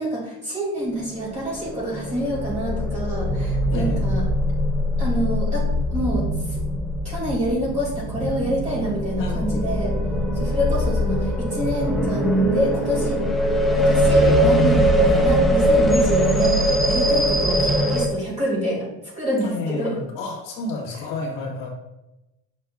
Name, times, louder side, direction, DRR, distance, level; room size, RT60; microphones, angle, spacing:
voice 1, 0.0-4.2 5.0-6.2 6.5-6.6 7.0-9.9 10.3-13.2 13.7-18.9 19.2-20.0, equal, 20° right, -4 dB, 2.5 m, -26 dB
sound 1, 1.2-18.1, equal, ahead, 0.5 m, -21 dB
voice 2, 3.7-4.1 9.2-9.9 15.0-15.3 19.4-21.7, left 3 dB, 60° left, -2 dB, 1.8 m, -31 dB
7.8 x 6.5 x 2.3 m, 0.93 s
cardioid pair, 160°, 36 cm